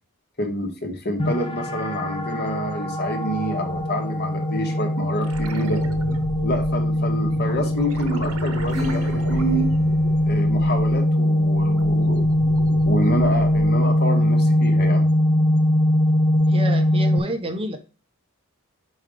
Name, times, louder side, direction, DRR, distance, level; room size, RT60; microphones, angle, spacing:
voice 1, 0.4-5.8 6.4-9.7 10.2-12.3 12.8-15.1, equal, 50° left, 3 dB, 1.5 m, -27 dB
sound 1, 1.2-17.2, left 1 dB, 25° left, 0.8 m, -21 dB
sound 2, 5.2-11.0 11.4-13.9 16.3-16.4, right 2 dB, 75° right, 1.0 m, -35 dB
Acoustic guitar / Strum, 8.7-11.6, left 3 dB, ahead, 2.9 m, -37 dB
voice 2, 16.5-17.8, equal, 25° right, 7 dB, 0.7 m, -29 dB
5.2 x 4.8 x 5.0 m, 0.34 s
head